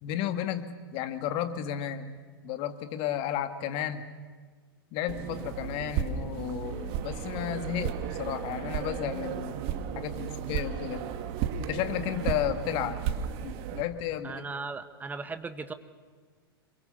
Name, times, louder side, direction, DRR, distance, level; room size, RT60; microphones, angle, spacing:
voice 1, 0.0-2.1 2.4-4.1 4.9-9.6 10.0-11.0 11.6-13.0 13.4-14.4, left 10 dB, 45° left, 9 dB, 2.0 m, -33 dB
sound 1, 5.1-13.8, right 9 dB, 45° right, 1.8 m, -34 dB
voice 2, 14.2-15.7, right 4 dB, 15° right, 10 dB, 1.6 m, -37 dB
27.0 x 23.0 x 7.0 m, 1.5 s
figure-of-eight pair, 100°, 13 cm